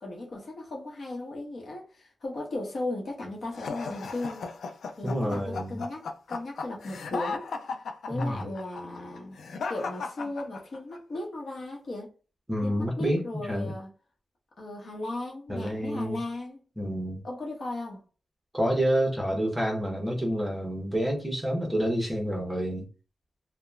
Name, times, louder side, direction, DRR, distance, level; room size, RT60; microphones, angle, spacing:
voice 1, 0.0-4.5 5.0-7.5 8.1-9.4 9.7-12.1 12.6-13.9 14.6-16.6 17.2-18.0, left 2 dB, 55° left, 0.9 m, -36 dB
sound 1, 3.5-11.0, left 4 dB, 85° left, 0.3 m, -36 dB
voice 2, 5.0-5.8 8.1-8.4 12.5-13.8 15.5-16.2 16.8-17.2 18.5-22.9, equal, 10° right, 0.8 m, -28 dB
2.9 x 2.1 x 2.3 m
wide cardioid pair, 120°, 0 cm